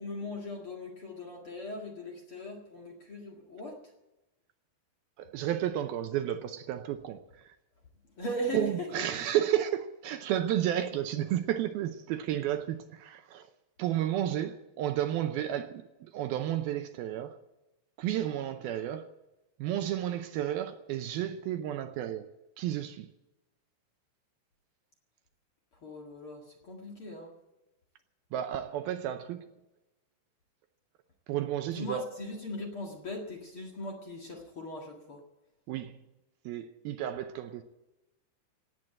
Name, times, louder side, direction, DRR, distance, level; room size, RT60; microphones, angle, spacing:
voice 1, 0.0-3.8 8.2-8.9 25.8-27.3 31.6-35.2, left 1 dB, 45° left, 2.1 m, -39 dB
voice 2, 5.2-7.6 8.5-13.5 13.8-17.4 18.0-19.0 19.6-22.3 22.6-23.1 28.3-29.4 31.3-32.0 35.7-36.0 36.5-37.6, right 11 dB, 75° right, 2.4 m, -32 dB
17.0 x 9.4 x 8.8 m
omnidirectional pair, 4.8 m